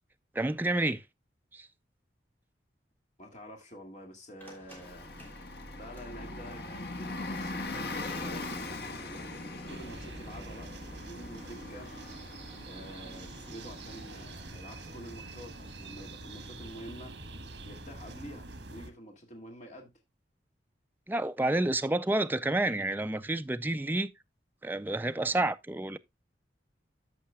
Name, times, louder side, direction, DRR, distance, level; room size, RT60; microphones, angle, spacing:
voice 1, 0.3-1.0 1.5-1.7 21.1-24.1 24.6-26.0, right 2 dB, 10° right, 0.4 m, -29 dB
voice 2, 3.2-5.1 5.7-11.9 12.7-17.2 17.6-19.9, equal, 40° left, 2.1 m, -48 dB
sound 1, 4.4-12.5, equal, 10° left, 2.9 m, -59 dB
Bus, 4.7-17.0, left 2 dB, 60° left, 1.4 m, -42 dB
sound 2, 9.7-18.9, right 2 dB, 75° right, 1.5 m, -46 dB
14.0 x 5.7 x 2.2 m
head